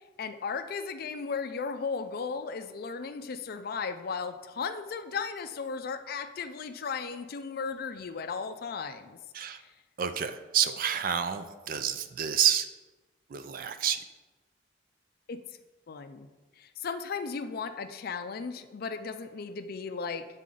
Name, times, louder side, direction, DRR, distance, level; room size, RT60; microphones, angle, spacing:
voice 1, 0.2-9.2 9.6-9.7 15.3-15.4 15.9-16.3 16.6-20.3, left 5 dB, 55° left, 10 dB, 0.4 m, -36 dB
voice 2, 10.0-12.7 13.3-14.0, right 9 dB, 50° right, 10 dB, 0.4 m, -29 dB
7.6 x 4.1 x 3.8 m, 1.2 s
head